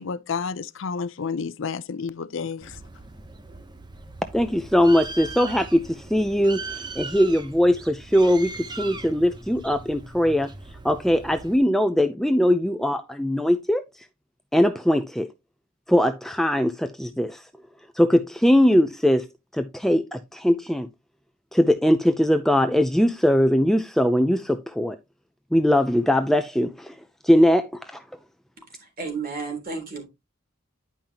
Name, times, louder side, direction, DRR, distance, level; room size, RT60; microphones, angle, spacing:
voice 1, 0.0-2.8, left 5 dB, 65° left, 0.5 m, -30 dB
Bird, 2.6-11.6, right 3 dB, 20° right, 0.8 m, -39 dB
voice 2, 4.3-6.6 7.0-8.5 8.8-10.5 10.8-13.8 14.5-15.3 15.9-17.4 18.0-19.3 19.5-20.9 21.5-25.0 25.5-26.9 27.2-28.0, equal, ahead, 0.5 m, -20 dB
voice 3, 28.7-30.0, right 4 dB, 45° right, 3.4 m, -32 dB
10.5 x 5.5 x 2.9 m
head